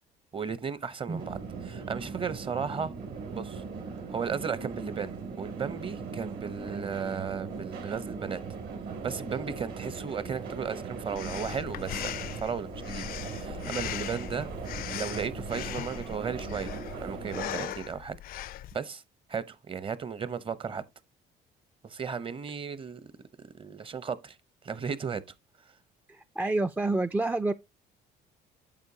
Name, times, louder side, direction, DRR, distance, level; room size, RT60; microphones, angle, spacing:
voice 1, 0.3-1.4 1.6-2.9 3.3-3.6 4.1-8.4 9.0-12.1 12.4-14.5 14.8-16.7 17.0-18.2 18.7-19.0 19.3-20.8 21.8-23.0 23.4-24.4 24.6-25.2, right 6 dB, 30° right, 0.8 m, -35 dB
sound 1, 1.1-17.7, right 5 dB, 70° right, 2.7 m, -39 dB
Breathing, 11.2-18.8, left 13 dB, 60° left, 0.4 m, -39 dB
voice 2, 26.1-27.5, right 2 dB, 10° right, 0.3 m, -28 dB
8.8 x 6.5 x 2.8 m
cardioid pair, 110°, 17 cm